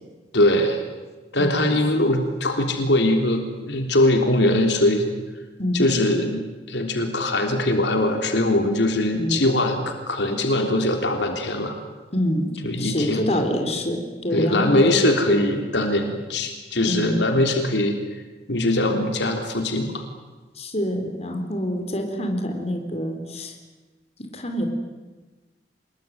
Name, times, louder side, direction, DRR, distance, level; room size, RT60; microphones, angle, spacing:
voice 1, 0.3-0.8 1.3-5.1 5.7-11.8 12.6-13.4 14.3-18.0 18.5-20.1, left 1 dB, 80° left, 4 dB, 3.5 m, -21 dB
voice 2, 5.6-5.9 9.1-9.4 12.1-14.9 16.9-17.2 20.6-23.5 24.3-24.7, equal, 35° left, 4 dB, 4.2 m, -26 dB
25.5 x 21.0 x 9.6 m, 1.2 s
head